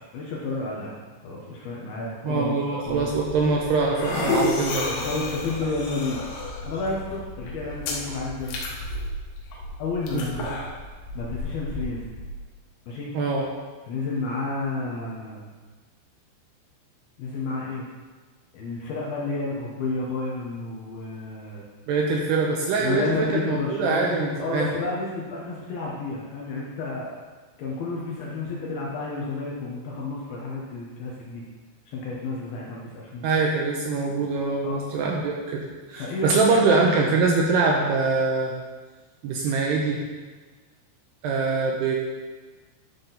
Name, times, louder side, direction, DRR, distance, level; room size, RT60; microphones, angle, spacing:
voice 1, 0.1-0.9 1.2-2.5 2.8-3.1 4.9-6.2 6.6-8.6 9.8-10.5 11.1-12.0 12.9-13.1 13.9-15.4 17.2-17.9 18.5-21.6 22.8-24.1 24.4-27.1 27.6-31.4 31.9-33.3 34.6-34.9 35.9-36.6, left 3 dB, 70° left, -4 dB, 2.5 m, -31 dB
voice 2, 2.2-4.9 10.1-10.5 13.1-13.4 21.9-24.7 33.2-38.5 39.2-40.0 41.2-42.0, right 3 dB, 80° right, -1 dB, 2.5 m, -23 dB
sound 1, 2.9-12.4, left 2 dB, 85° left, 3.8 m, -32 dB
11.0 x 6.1 x 4.0 m, 1.4 s
omnidirectional pair, 5.4 m